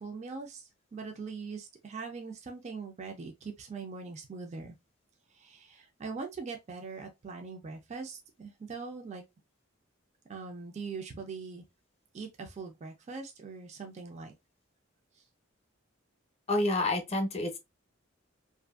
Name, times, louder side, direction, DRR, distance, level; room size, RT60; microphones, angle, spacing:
voice 1, 0.0-4.7 5.3-9.2 10.3-11.6 12.1-14.3 15.1-15.2, right 4 dB, 35° right, 0.4 m, -42 dB
voice 2, 16.5-17.6, left 2 dB, 30° left, 0.6 m, -28 dB
2.5 x 2.5 x 2.3 m
head